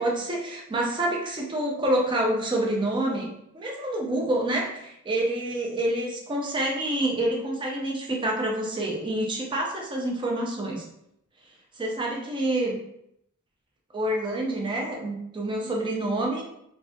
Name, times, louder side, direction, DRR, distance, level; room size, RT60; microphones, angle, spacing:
voice 1, 0.0-3.3 3.5-10.8 11.7-12.8 13.9-16.4, right 1 dB, 20° right, -1 dB, 0.4 m, -27 dB
2.3 x 2.1 x 2.6 m, 0.77 s
head